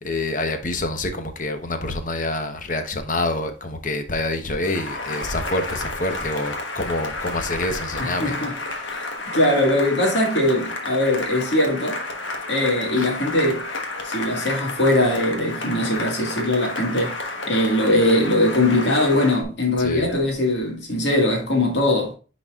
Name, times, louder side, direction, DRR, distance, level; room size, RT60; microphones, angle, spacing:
voice 1, 0.0-8.3 13.0-13.1 19.8-20.1, left 2 dB, 45° left, 1.0 m, -27 dB
Cheering / Applause, 4.6-19.4, left 2 dB, 80° left, 1.3 m, -31 dB
voice 2, 8.0-8.5 8.9-12.0 12.5-13.7 14.0-17.2 17.5-22.1, left 1 dB, 65° left, 2.0 m, -21 dB
9.4 x 4.2 x 2.4 m
head